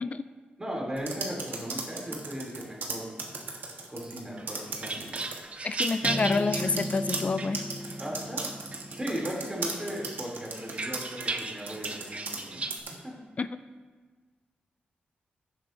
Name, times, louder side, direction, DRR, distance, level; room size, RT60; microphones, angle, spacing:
voice 1, 0.6-3.2 3.9-5.2 8.0-12.6 13.0-13.2, equal, 20° right, -3 dB, 2.8 m, -37 dB
sound 1, 1.0-4.2 4.5-5.4 5.8-12.4 12.7-12.9, right 4 dB, 70° right, 1.3 m, -36 dB
sound 2, 4.4-7.9 8.4-9.3 9.7-12.8, right 3 dB, 35° right, 0.7 m, -36 dB
voice 2, 5.6-7.6 13.4-13.5, left 4 dB, 40° left, 12 dB, 0.3 m, -28 dB
sound 3, 6.0-9.6, equal, 5° right, 0.9 m, -37 dB
15.0 x 7.6 x 2.6 m, 1.5 s
cardioid pair, 85°, 4 cm